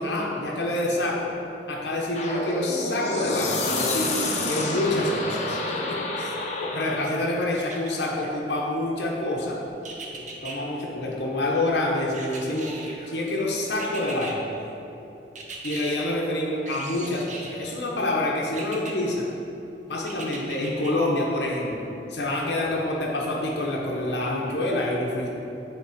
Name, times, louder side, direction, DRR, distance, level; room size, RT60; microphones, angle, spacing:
voice 1, 0.0-1.3 1.7-4.2 4.5-5.6 5.9-6.3 6.6-9.6 10.2-12.7 13.1-14.5 15.6-19.3 19.9-25.3, left 1 dB, 75° left, -2 dB, 0.9 m, -27 dB
sound 1, 2.1-7.2, left 2 dB, 40° left, 0.8 m, -28 dB
sound 2, 7.5-8.3 9.8-10.6 12.1-13.1 13.8-14.3 15.4-16.0 16.7-17.6 18.5-18.9 20.1-20.9 21.4-21.5, right 3 dB, 45° right, 0.8 m, -38 dB
8.4 x 3.6 x 4.9 m, 2.9 s
head